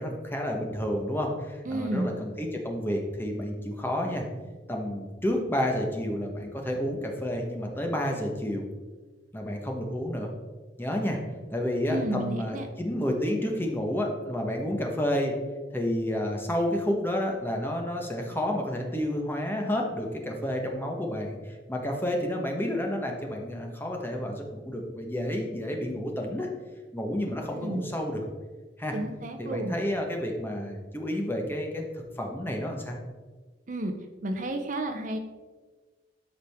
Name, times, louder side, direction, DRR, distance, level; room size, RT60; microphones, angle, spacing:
voice 1, 0.0-4.3 4.7-8.6 9.3-10.3 10.8-11.2 11.5-15.3 15.7-26.5 26.9-28.2 28.8-29.0 29.4-31.8 32.2-33.0, left 1 dB, 10° left, 1 dB, 1.1 m, -30 dB
voice 2, 1.7-2.1 11.9-12.7 27.5-27.8 28.9-29.7 33.7-33.9 34.2-35.2, right 1 dB, 45° right, 6 dB, 0.7 m, -31 dB
13.0 x 5.0 x 3.6 m, 1.3 s
head